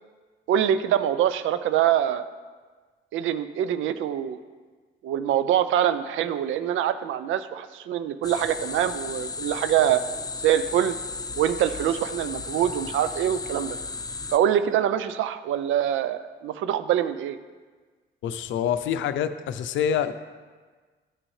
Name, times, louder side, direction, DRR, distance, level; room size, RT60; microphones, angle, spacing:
voice 1, 0.5-2.3 3.1-4.4 5.0-10.0 10.4-11.0 11.3-13.8 14.3-17.4, right 10 dB, 80° right, 12 dB, 0.5 m, -24 dB
sound 1, 8.2-14.4, left 4 dB, 20° left, 0.4 m, -35 dB
voice 2, 18.2-20.1, left 8 dB, 75° left, 11 dB, 0.5 m, -26 dB
12.0 x 6.1 x 3.2 m, 1.4 s
cardioid pair, 90°, 20 cm